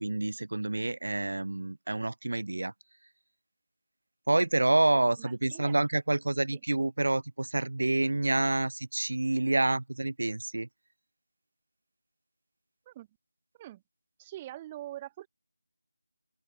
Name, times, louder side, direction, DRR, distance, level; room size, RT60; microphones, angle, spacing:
voice 1, 0.0-2.7 4.3-10.7, right 2 dB, 65° right, 2.2 m, -28 dB
voice 2, 5.2-5.8 6.5-6.6 12.9-13.1 13.6-13.8 14.2-15.3, right 14 dB, 10° right, 4.1 m, -43 dB
open air
figure-of-eight pair, 175°, 0 cm